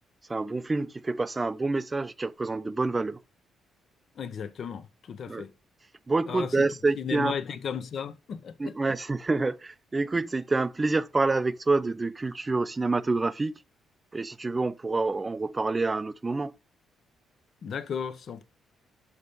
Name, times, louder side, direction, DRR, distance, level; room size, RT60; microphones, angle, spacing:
voice 1, 0.3-3.2 5.3-5.4 6.1-7.3 8.6-13.6 14.1-16.5, right 3 dB, 25° right, 0.5 m, -27 dB
voice 2, 4.1-5.5 6.3-6.7 6.9-8.8 17.6-18.4, left 7 dB, 55° left, 0.9 m, -35 dB
6.2 x 5.2 x 5.3 m
cardioid pair, 90°, 0 cm